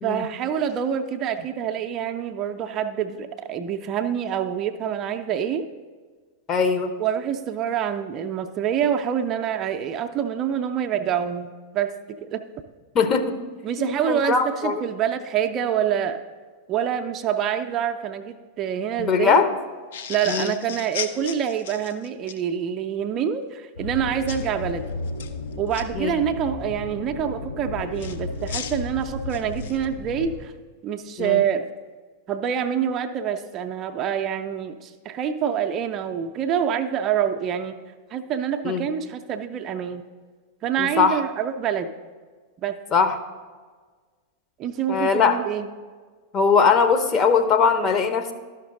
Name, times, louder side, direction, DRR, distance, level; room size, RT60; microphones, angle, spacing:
voice 1, 0.0-5.7 7.0-12.4 13.6-16.2 16.7-19.4 20.1-24.9 25.6-30.5 30.8-31.6 32.3-37.8 38.1-40.0 40.6-41.9 42.6-42.8 44.6-45.7, right 8 dB, 35° right, 5 dB, 0.4 m, -26 dB
voice 2, 6.5-6.9 12.9-13.4 13.8-14.8 19.0-19.5 20.3-20.5 25.9-26.1 31.2-31.4 38.6-38.9 40.8-41.2 42.9-43.2 44.9-45.4 46.3-48.3, left 5 dB, 30° left, 7 dB, 0.8 m, -20 dB
sound 1, 19.9-22.4 24.3-24.5 25.1-25.8 28.0-29.9, left 8 dB, 60° left, 0.5 m, -35 dB
sound 2, 23.8-30.4, left 3 dB, 75° left, 3.0 m, -34 dB
12.0 x 5.9 x 3.7 m, 1.5 s
figure-of-eight pair, 90°, 0 cm